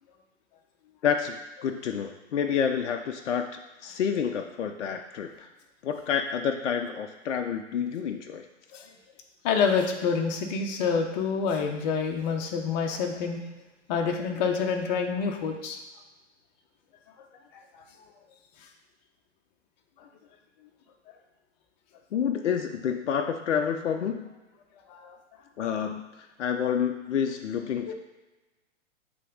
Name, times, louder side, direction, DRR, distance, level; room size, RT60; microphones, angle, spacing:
voice 1, 1.0-5.5 5.8-8.5 22.1-24.3 25.6-26.1 26.4-27.9, left 7 dB, 65° left, 4 dB, 0.6 m, -29 dB
voice 2, 9.4-13.4 13.9-15.8 17.5-17.8 24.9-25.2 27.9-28.0, left 5 dB, 35° left, 3 dB, 0.9 m, -27 dB
7.4 x 3.4 x 3.8 m, 1.1 s
figure-of-eight pair, 115°, 37 cm